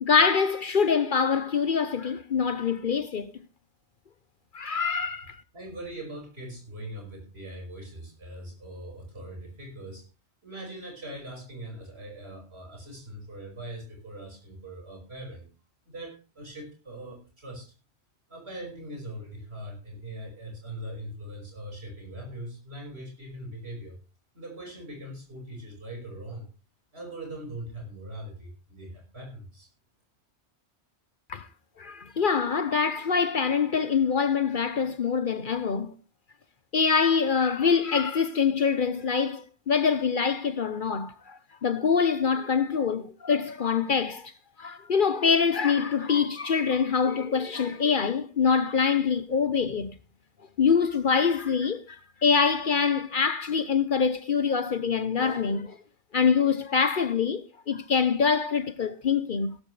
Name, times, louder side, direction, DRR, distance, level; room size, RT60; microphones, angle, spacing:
voice 1, 0.0-3.3 4.5-5.4 31.3-31.5 31.8-36.0 36.7-44.3 44.6-50.0 50.6-55.8 56.1-59.6, left 6 dB, 50° left, 0.9 m, -25 dB
voice 2, 5.5-10.1 10.4-15.5 15.9-17.7 18.3-24.0 24.3-26.5 26.9-29.7, right 1 dB, 65° right, 5.8 m, -41 dB
16.0 x 13.5 x 3.2 m
omnidirectional pair, 1.2 m